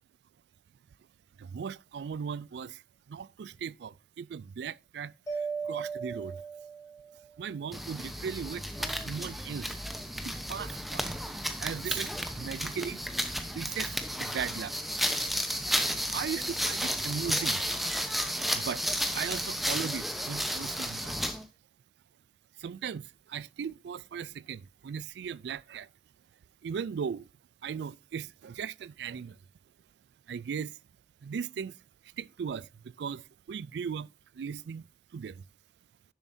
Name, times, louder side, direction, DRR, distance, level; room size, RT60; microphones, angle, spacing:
voice 1, 1.4-2.8 3.1-5.1 5.6-6.4 7.4-9.7 10.2-11.1 11.6-12.1 12.4-13.0 13.5-14.7 16.1-17.6 18.5-18.8 19.1-21.2 22.6-25.9 26.6-27.3 27.6-29.4 30.3-30.8 31.2-31.7 32.2-32.7 33.0-34.1 34.4-34.8 35.1-35.4, right 7 dB, 65° right, 0.3 m, -37 dB
Mallet percussion, 5.3-7.3, right 5 dB, 20° left, 1.9 m, -37 dB
sound 1, 7.7-21.4, equal, ahead, 0.8 m, -33 dB
10.5 x 7.2 x 2.7 m
head